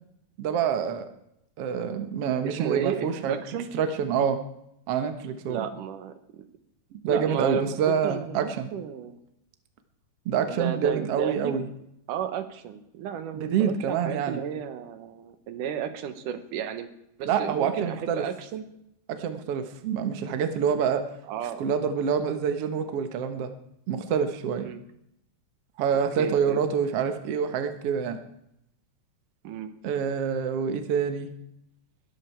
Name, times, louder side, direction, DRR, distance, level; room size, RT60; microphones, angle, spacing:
voice 1, 0.4-1.1 1.6-3.4 3.7-4.4 4.9-5.7 6.9-8.7 10.3-11.7 13.3-14.4 17.3-18.2 19.1-21.1 21.6-23.5 23.9-24.7 25.8-28.2 29.8-31.3, right 7 dB, 55° right, 8 dB, 2.0 m, -26 dB
voice 2, 2.4-3.7 5.5-6.5 7.1-7.8 8.0-9.2 10.4-11.6 12.1-16.9 17.2-18.6 21.3-21.7 24.6-24.8 26.2-26.7 29.4-29.7, right 8 dB, 80° right, 10 dB, 2.7 m, -33 dB
21.0 x 14.0 x 4.5 m, 0.80 s
omnidirectional pair, 3.6 m